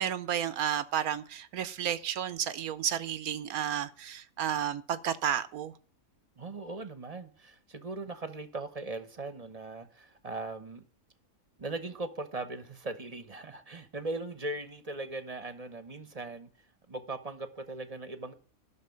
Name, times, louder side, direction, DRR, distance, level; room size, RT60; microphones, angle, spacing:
voice 1, 0.0-5.7, right 9 dB, 75° right, 1.2 m, -32 dB
voice 2, 6.4-10.8 11.6-16.5 16.9-18.3, right 2 dB, 30° right, 1.0 m, -39 dB
11.0 x 6.3 x 8.5 m
omnidirectional pair, 1.6 m